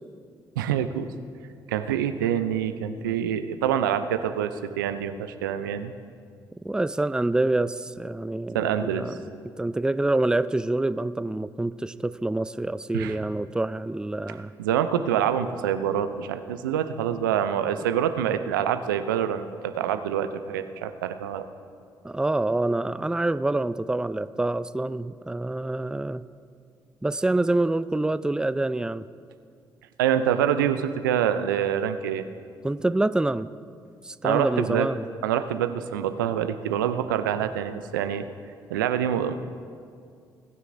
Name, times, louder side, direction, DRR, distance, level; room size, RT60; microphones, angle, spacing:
voice 1, 0.6-1.1 1.7-5.9 8.5-9.1 12.9-13.2 14.6-21.5 30.0-32.2 34.2-34.9 35.2-38.2 38.7-39.3, right 9 dB, 90° right, 10 dB, 0.4 m, -26 dB
voice 2, 6.6-9.2 9.6-14.5 22.0-26.2 27.0-29.0 32.6-33.5 34.0-35.0, right 2 dB, 5° right, 15 dB, 0.4 m, -26 dB
21.5 x 9.6 x 2.6 m, 2.2 s
hypercardioid pair, 45°, 11 cm